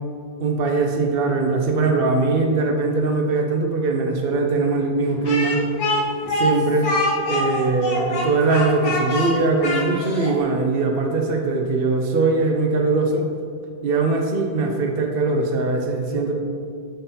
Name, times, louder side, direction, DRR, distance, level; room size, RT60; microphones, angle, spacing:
voice 1, 0.4-5.6 6.2-6.9 7.3-13.2 13.8-16.3, right 3 dB, 85° right, 2 dB, 0.5 m, -21 dB
Speech, 5.2-10.3, left 1 dB, 80° left, 2.3 m, -24 dB
12.5 x 4.2 x 3.9 m, 2.2 s
omnidirectional pair, 2.1 m